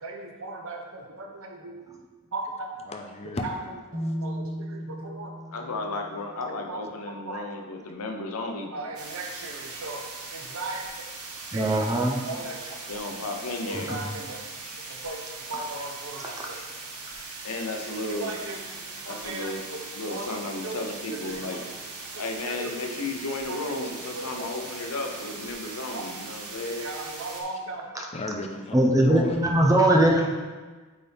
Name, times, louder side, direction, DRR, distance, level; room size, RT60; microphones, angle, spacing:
voice 1, 0.0-1.8 2.3-2.7 3.4-3.5 4.2-5.3 6.7-6.8 7.3-7.4 8.7-10.0 10.3-10.8 11.5-11.8 12.2-12.7 13.7-14.4 14.9-15.2 15.5-16.6 18.1-18.6 19.1-19.5 20.1-20.3 20.6-20.8 21.1-21.6 22.1-23.0 23.5-23.9 24.1-24.3 25.9-26.1 26.8-27.8 29.6-29.7, right 2 dB, 65° right, 1 dB, 0.9 m, -37 dB
voice 2, 2.8-3.5 14.6-14.8 16.3-16.6 28.0-29.4, left 2 dB, 30° left, 3 dB, 0.5 m, -36 dB
sound 1, 3.9-7.9, equal, 40° right, 1.2 m, -37 dB
voice 3, 5.5-8.7 9.4-9.5 12.9-14.0 17.4-18.4 19.0-19.6 19.9-21.8 22.2-26.8, left 2 dB, 75° left, 3 dB, 0.8 m, -34 dB
sound 2, 8.9-27.4, right 3 dB, 85° right, 1.1 m, -40 dB
voice 4, 11.5-12.2 13.7-14.0 15.5-15.7 16.2-16.5 17.1-17.2 27.9-28.1 28.7-30.3, right 1 dB, 15° right, 1 dB, 0.7 m, -22 dB
8.4 x 4.1 x 3.5 m, 1.3 s
head